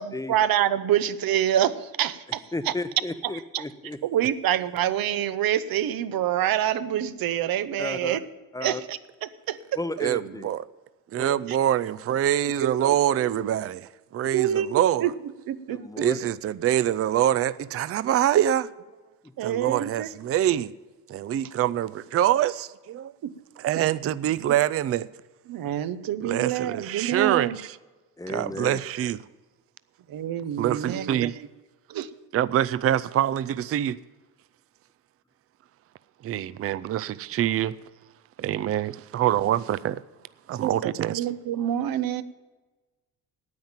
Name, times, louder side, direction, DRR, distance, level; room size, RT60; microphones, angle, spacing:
voice 1, 0.0-2.7 3.5-3.6 4.0-8.2 8.6-9.6 11.5-11.6 12.6-13.0 13.2-13.5 14.3-15.1 15.5-16.0 18.3-18.4 19.4-20.1 23.2-23.3 23.7-23.8 25.5-27.6 30.1-31.3 31.9-32.1 40.6-42.2, right 11 dB, 75° right, 0.8 m, -26 dB
voice 2, 2.5-4.0 7.8-8.2 8.5-8.8 9.8-10.5 11.2-11.4 15.7-16.2 28.2-28.8, left 2 dB, 10° left, 0.7 m, -33 dB
voice 3, 10.0-10.6 11.1-15.1 16.0-18.6 19.4-20.7 21.1-23.1 23.6-25.1 26.2-27.8 28.3-29.2 30.6-31.4 32.3-34.0 36.2-37.7 38.4-40.0 40.5-41.2, right 11 dB, 40° right, 0.4 m, -25 dB
9.5 x 8.9 x 8.8 m
cardioid pair, 115°, 35 cm